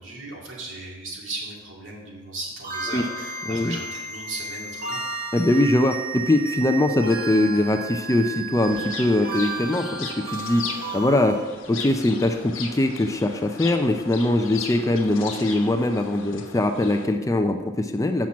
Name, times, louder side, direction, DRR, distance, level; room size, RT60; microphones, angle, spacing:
voice 1, 0.0-5.0, right 2 dB, 65° right, -3 dB, 2.3 m, -36 dB
sound 1, 2.6-11.4, right 4 dB, 45° right, 1.4 m, -33 dB
voice 2, 5.3-11.4 11.7-18.3, left 1 dB, 15° left, 6 dB, 0.4 m, -22 dB
sound 2, 8.5-17.1, left 5 dB, 80° left, 1.2 m, -37 dB
7.3 x 5.9 x 6.2 m, 1.3 s
head